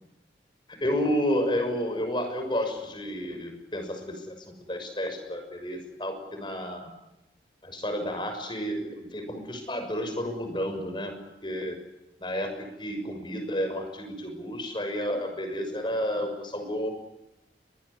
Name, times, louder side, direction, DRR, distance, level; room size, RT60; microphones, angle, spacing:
voice 1, 0.7-6.9 7.6-11.1 11.4-11.8 12.2-16.9, equal, 25° left, 6 dB, 6.3 m, -31 dB
24.0 x 20.5 x 9.9 m, 0.94 s
head